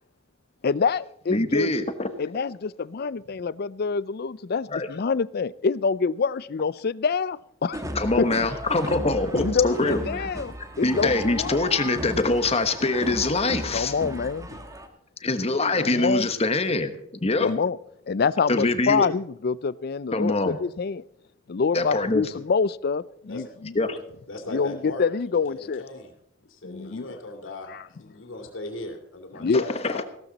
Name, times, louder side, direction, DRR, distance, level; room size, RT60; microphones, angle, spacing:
voice 1, 0.6-1.7 2.2-7.9 8.2-8.3 9.3-11.6 13.7-14.6 15.8-16.3 17.4-17.8 18.1-21.0 21.5-23.8 24.5-25.8 26.6-27.1 27.7-27.8 29.4-29.6, left 5 dB, 50° left, 0.4 m, -26 dB
voice 2, 1.3-2.1 4.7-4.9 7.9-10.3 10.8-13.9 15.2-16.9 17.2-17.5 18.5-19.1 20.1-20.6 21.7-22.3 23.7-24.0 29.5-30.0, left 2 dB, 30° left, 1.2 m, -24 dB
sound 1, 7.7-14.9, equal, 15° right, 1.5 m, -35 dB
voice 3, 24.3-25.1 25.8-26.1 26.4-30.0, left 2 dB, 70° left, 2.7 m, -38 dB
16.0 x 13.0 x 4.1 m
head